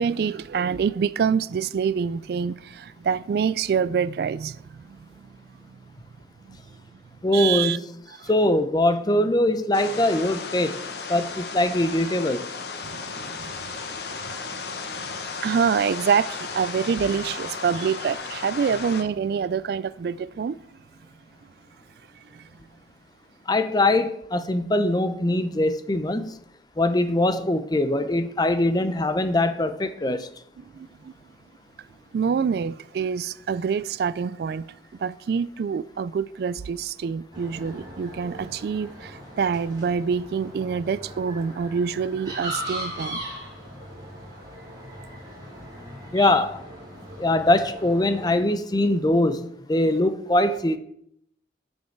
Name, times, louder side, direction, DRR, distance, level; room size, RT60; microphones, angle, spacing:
voice 1, 0.0-4.6 4.9-5.0 7.3-7.8 8.2-8.3 12.9-13.5 15.0-15.1 15.4-20.6 30.7-30.9 32.1-34.6 35.0-43.2 46.2-46.4, right 6 dB, 60° right, 0.3 m, -26 dB
voice 2, 7.2-7.8 8.3-10.8 11.1-12.5 23.5-26.4 26.8-30.3 46.1-46.6 47.2-50.8, left 1 dB, 25° left, 0.6 m, -22 dB
sound 1, 9.7-19.0, left 4 dB, 65° left, 1.0 m, -34 dB
sound 2, 37.3-48.4, equal, 25° right, 4.0 m, -39 dB
13.5 x 5.4 x 4.6 m
head